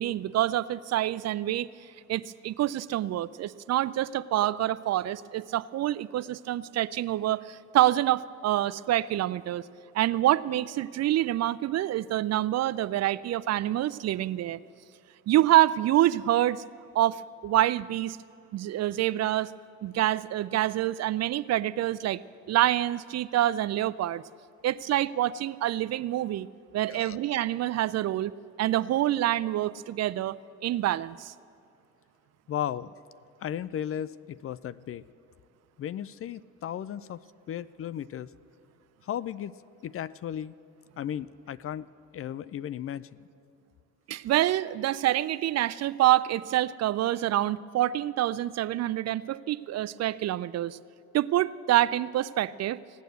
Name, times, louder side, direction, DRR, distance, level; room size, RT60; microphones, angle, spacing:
voice 1, 0.0-1.7 2.1-9.6 9.9-14.6 15.3-16.6 16.9-18.2 18.5-19.5 19.8-22.2 22.5-24.2 24.6-26.5 26.7-28.3 28.6-31.3 44.1-50.8 51.1-52.8, right 13 dB, 50° right, 18 dB, 0.4 m, -26 dB
voice 2, 26.9-27.2 32.5-32.9 33.4-35.0 35.8-37.2 37.5-38.3 39.0-39.5 39.8-40.5 41.0-43.3, left 10 dB, 40° left, 18 dB, 0.4 m, -35 dB
16.5 x 9.2 x 8.0 m, 2.4 s
supercardioid pair, 65°, 34 cm